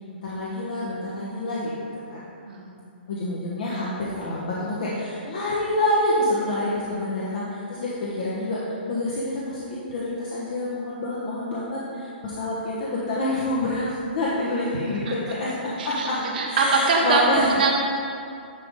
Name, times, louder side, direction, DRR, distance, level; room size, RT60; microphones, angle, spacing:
voice 1, 0.2-1.8 2.1-2.2 3.1-8.6 8.9-16.2 16.5-17.6, left 1 dB, 50° left, -7 dB, 1.4 m, -27 dB
voice 2, 2.5-2.8 14.9-15.1 15.8-17.7, right 3 dB, 55° right, 0 dB, 1.4 m, -23 dB
10.5 x 3.9 x 5.0 m, 2.4 s
hypercardioid pair, 160°, 6 cm